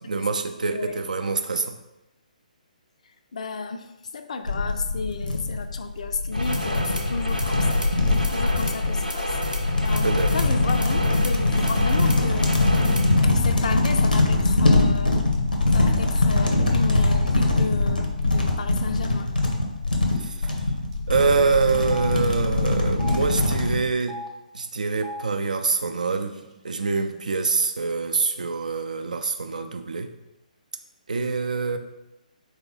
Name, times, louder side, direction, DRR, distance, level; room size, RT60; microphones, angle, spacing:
voice 1, 0.0-1.8 10.0-10.3 20.2-20.5 21.1-24.2 24.5-30.1 31.1-31.8, right 4 dB, 65° right, 7 dB, 0.4 m, -25 dB
voice 2, 3.3-7.8 8.3-12.6 13.2-15.3 15.7-19.3, left 4 dB, 50° left, 7 dB, 0.4 m, -32 dB
sound 1, 4.5-23.8, left 2 dB, 85° left, 0.8 m, -22 dB
sound 2, 6.3-13.2, equal, 90° right, 0.7 m, -32 dB
Telephone, 19.0-19.2 19.5-19.6 20.5-20.6 20.9-21.0 21.8-22.1 22.9-23.2 24.0-24.3 24.9-25.2 26.0-26.1 26.4-27.1, equal, 10° right, 0.5 m, -38 dB
3.9 x 2.8 x 3.9 m, 0.97 s
figure-of-eight pair, 130°, 5 cm